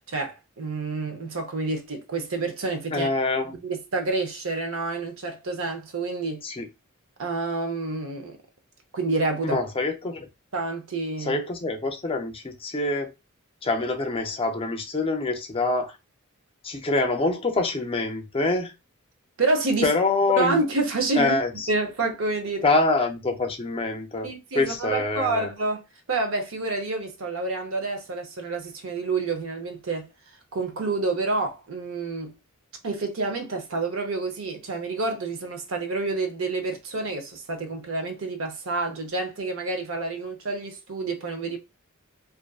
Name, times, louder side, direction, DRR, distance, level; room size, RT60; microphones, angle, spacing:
voice 1, 0.1-3.1 3.5-6.4 7.2-8.4 8.9-9.6 10.5-11.4 19.4-19.9 20.4-21.4 21.7-22.6 24.2-30.1 30.5-32.3 32.8-41.6, right 3 dB, 70° right, 0.7 m, -28 dB
voice 2, 2.9-3.5 6.4-6.7 9.4-10.3 11.2-13.1 13.6-16.0 16.6-18.7 19.8-20.6 21.2-21.7 22.6-24.3 24.5-25.5, left 3 dB, 25° left, 0.5 m, -25 dB
2.5 x 2.5 x 2.3 m
head